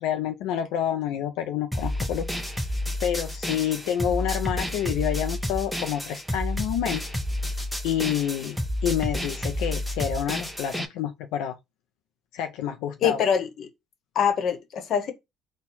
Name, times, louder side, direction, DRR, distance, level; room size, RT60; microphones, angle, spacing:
voice 1, 0.0-2.3 3.0-7.1 7.8-11.6 12.3-13.3, left 10 dB, 90° left, 0.4 m, -28 dB
sound 1, 1.7-10.9, left 1 dB, ahead, 0.8 m, -30 dB
voice 2, 13.0-13.7 14.1-15.1, left 7 dB, 55° left, 1.0 m, -24 dB
4.3 x 2.2 x 4.1 m
cardioid pair, 110°, 0 cm